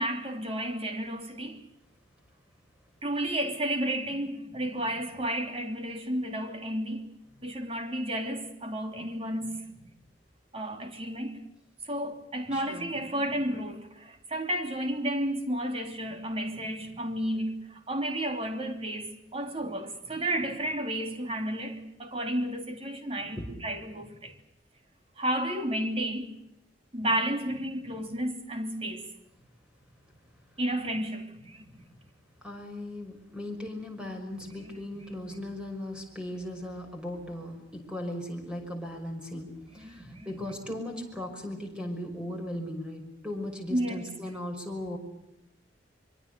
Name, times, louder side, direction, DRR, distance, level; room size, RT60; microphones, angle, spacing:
voice 1, 0.0-1.7 3.0-7.1 7.4-9.9 10.5-11.4 11.8-24.4 25.2-26.4 26.9-29.1 30.6-31.8 34.4-34.5 34.9-35.0 39.8-40.3 43.7-44.0, right 1 dB, 35° right, 3.2 m, -32 dB
voice 2, 12.5-12.9 23.3-23.5 32.4-45.0, left 1 dB, 5° right, 6.1 m, -37 dB
24.5 x 24.0 x 6.9 m
head